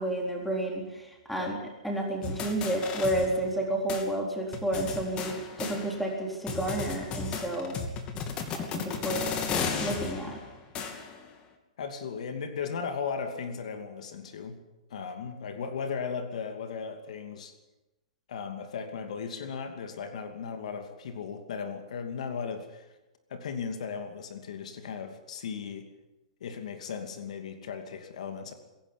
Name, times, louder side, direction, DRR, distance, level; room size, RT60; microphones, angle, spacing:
voice 1, 0.0-1.6 1.8-7.7 8.5-9.2 9.8-10.4, right 1 dB, ahead, 0 dB, 4.1 m, -31 dB
sound 1, 2.2-3.6 3.9-4.0 4.5-6.2 6.5-11.3, left 5 dB, 25° left, 2.7 m, -34 dB
voice 2, 11.8-14.6 14.9-17.5 18.3-22.9 23.3-25.9 26.4-28.5, left 6 dB, 70° left, 7 dB, 2.6 m, -36 dB
23.0 x 11.5 x 10.0 m, 1.0 s
hypercardioid pair, 145°, 4 cm